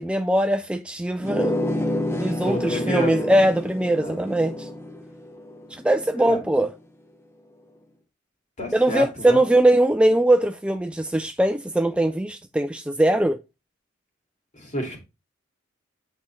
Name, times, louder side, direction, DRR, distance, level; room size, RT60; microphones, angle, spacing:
voice 1, 0.0-1.6 2.1-4.7 5.7-6.7 8.7-13.4, right 1 dB, 5° right, 0.4 m, -21 dB
sound 1, 1.2-6.5, left 1 dB, 15° left, 0.8 m, -29 dB
voice 2, 2.3-3.2 4.0-4.2 6.2-6.4 8.6-9.6 10.1-10.2 14.5-15.0, left 1 dB, 35° left, 2.5 m, -30 dB
8.3 x 5.4 x 3.2 m
head